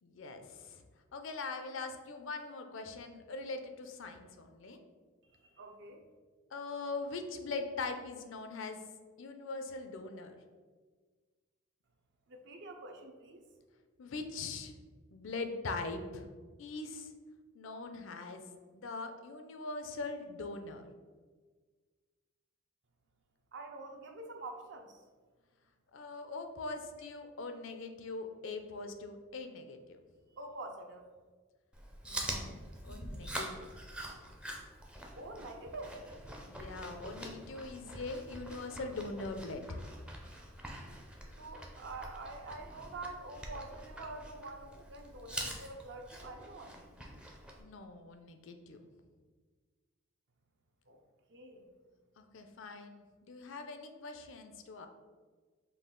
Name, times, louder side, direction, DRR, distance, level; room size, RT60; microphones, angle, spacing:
voice 1, 0.0-0.8 1.1-4.8 6.5-8.8 9.2-10.4 14.0-14.7 15.1-16.3 16.6-17.1 17.5-18.4 18.7-20.9 25.9-30.0 32.0-33.7 36.5-39.8 47.6-48.8 52.2-54.9, left 3 dB, 65° left, 7 dB, 0.4 m, -42 dB
voice 2, 5.4-6.0 12.3-13.5 23.5-25.0 30.4-31.1 35.2-36.0 41.4-46.8 50.9-51.0 51.3-51.7, right 2 dB, 55° right, 4 dB, 0.5 m, -46 dB
Chewing mastication, 31.7-47.6, right 1 dB, 5° right, 0.4 m, -45 dB
5.4 x 2.3 x 3.7 m, 1.5 s
head